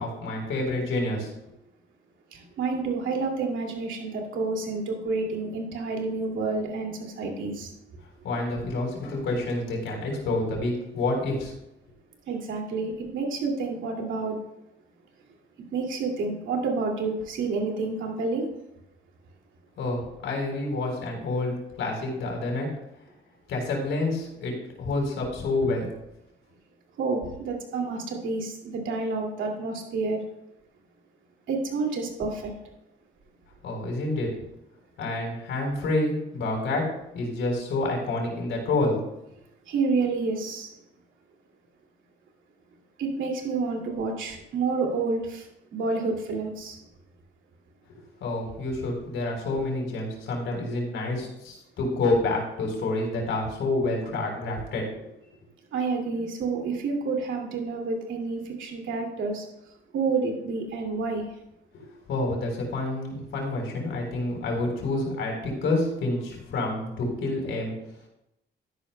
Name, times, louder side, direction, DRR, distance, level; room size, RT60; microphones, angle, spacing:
voice 1, 0.0-1.5 8.2-11.5 19.8-22.7 23.5-25.9 33.6-34.3 35.0-36.9 37.1-39.0 48.2-55.1 61.7-67.8, left 2 dB, 75° left, 1 dB, 3.9 m, -28 dB
voice 2, 2.3-7.7 12.3-14.4 15.7-18.5 27.0-30.2 31.5-32.5 39.7-40.7 43.0-46.8 55.7-59.4 59.9-61.2, right 4 dB, 75° right, 1 dB, 2.5 m, -29 dB
12.5 x 11.0 x 2.2 m, 0.85 s
cardioid pair, 90°, 20 cm